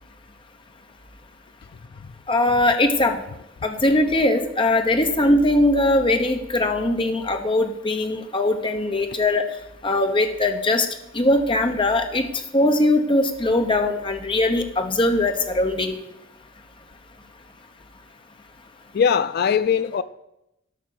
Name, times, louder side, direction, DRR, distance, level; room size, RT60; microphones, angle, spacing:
voice 1, 2.3-3.2 3.6-9.4 9.8-10.9 11.1-12.3 12.5-16.0, left 1 dB, 25° left, 1.0 m, -20 dB
voice 2, 18.9-20.0, left 7 dB, 55° left, 0.3 m, -20 dB
11.5 x 6.0 x 6.1 m
head